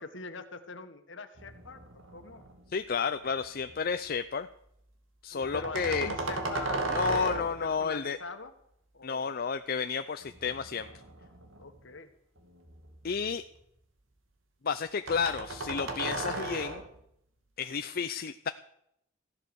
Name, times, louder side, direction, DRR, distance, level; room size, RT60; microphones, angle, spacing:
voice 1, 0.0-2.5 5.3-8.5 8.9-9.4 11.6-12.1, left 4 dB, 65° left, 9 dB, 1.6 m, -43 dB
sound 1, 1.4-2.7 3.1-3.8 5.4-7.8 10.3-11.8 12.4-13.6 15.1-17.0, right 2 dB, 80° right, 2.7 m, -36 dB
voice 2, 2.7-4.5 5.2-6.1 6.9-8.2 9.0-10.9 13.0-13.4 14.6-16.8 17.6-18.5, left 6 dB, 50° left, 10 dB, 0.6 m, -31 dB
15.0 x 11.5 x 7.0 m, 0.75 s
head